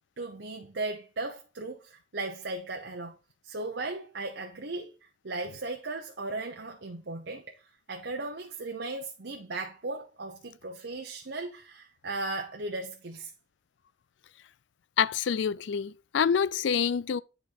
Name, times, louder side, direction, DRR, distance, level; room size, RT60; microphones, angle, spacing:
voice 1, 0.2-3.2 3.4-7.5 7.9-13.3, right 2 dB, 70° right, 0.9 m, -37 dB
voice 2, 15.0-17.2, left 7 dB, 75° left, 0.4 m, -27 dB
10.0 x 4.4 x 4.0 m
head